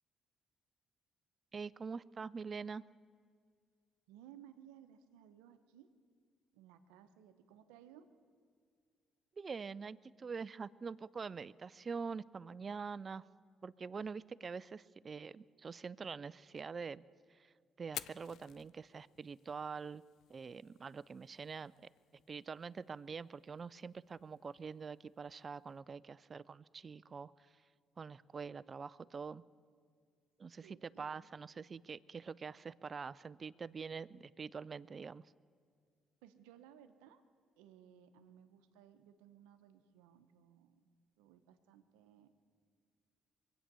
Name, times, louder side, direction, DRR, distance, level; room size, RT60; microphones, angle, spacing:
voice 1, 1.5-2.8 9.4-13.2 13.6-17.0 17.3-17.5 17.8-20.0 20.3-21.7 22.1-27.5 28.0-29.4 30.4-35.2, right 5 dB, 40° right, 19 dB, 0.4 m, -45 dB
voice 2, 4.1-5.9 6.5-8.1 30.6-31.1 36.2-37.2 37.6-40.9 41.2-42.3, right 10 dB, 90° right, 10 dB, 0.8 m, -60 dB
Fire, 17.8-25.8, left 11 dB, 70° left, 0.4 m, -55 dB
22.5 x 8.8 x 6.8 m, 2.1 s
supercardioid pair, 60°, 0 cm